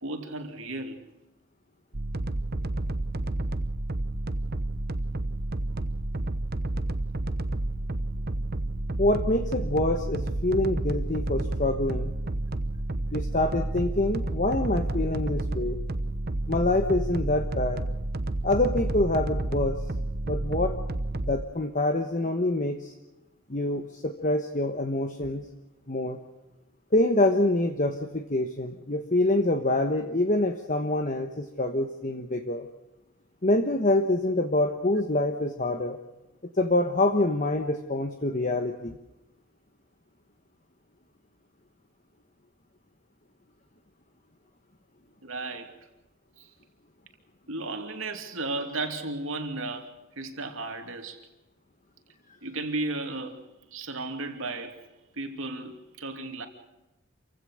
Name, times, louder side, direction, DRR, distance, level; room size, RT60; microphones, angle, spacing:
voice 1, 0.0-1.1 45.2-45.8 46.4-46.5 47.5-51.2 52.4-54.8 55.2-56.5, right 2 dB, 70° right, 2.8 m, -34 dB
sound 1, 1.9-21.4, right 2 dB, 45° right, 1.0 m, -30 dB
voice 2, 9.0-12.1 13.1-15.8 16.5-17.9 18.4-19.8 20.2-20.8 21.3-22.9 23.5-25.4 25.9-26.2 26.9-32.7 33.4-36.0 36.6-39.0, left 2 dB, 35° left, 1.2 m, -26 dB
27.5 x 16.0 x 6.5 m
head